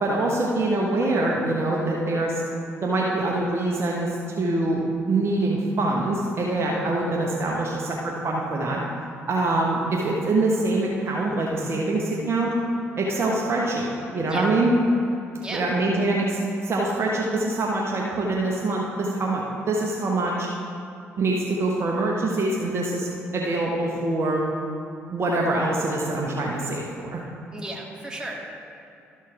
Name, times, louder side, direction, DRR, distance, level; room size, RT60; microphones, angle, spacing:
voice 1, 0.0-2.4 2.8-4.1 4.4-4.8 5.1-8.8 9.3-12.5 13.0-14.7 15.5-20.5 21.2-23.1 23.3-24.4 25.1-27.2, right 2 dB, 40° right, -2 dB, 1.2 m, -24 dB
voice 2, 27.5-28.4, right 1 dB, 10° right, -1 dB, 1.8 m, -34 dB
13.0 x 4.5 x 4.8 m, 2.7 s
figure-of-eight pair, 45°, 6 cm